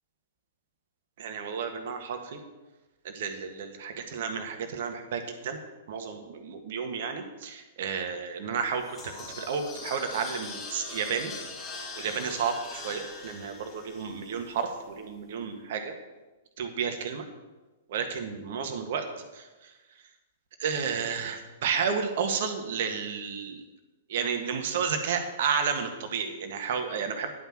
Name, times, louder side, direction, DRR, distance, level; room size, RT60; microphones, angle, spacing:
voice 1, 1.2-2.4 3.0-5.6 5.9-11.3 12.0-15.9 16.6-17.3 17.9-19.1 19.3-19.7 20.6-23.6 24.1-27.3, right 6 dB, 60° right, 5 dB, 1.7 m, -32 dB
sound 1, 8.6-14.9, left 3 dB, 25° left, 2.9 m, -42 dB
10.5 x 5.8 x 7.7 m, 1.2 s
hypercardioid pair, 115°, 0 cm